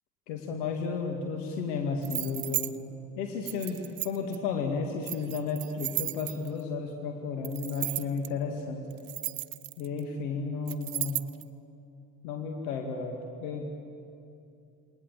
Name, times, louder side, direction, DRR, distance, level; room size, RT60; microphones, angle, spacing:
voice 1, 0.3-2.8 3.2-8.9 9.8-11.2 12.2-13.7, left 4 dB, 65° left, 3 dB, 2.3 m, -33 dB
sound 1, 2.0-2.7 3.5-4.4 5.0-6.6 7.4-8.3 8.9-10.0 10.7-11.4, right 16 dB, 45° right, 1.1 m, -34 dB
28.0 x 22.0 x 7.6 m, 2.6 s
figure-of-eight pair, 60°, 49 cm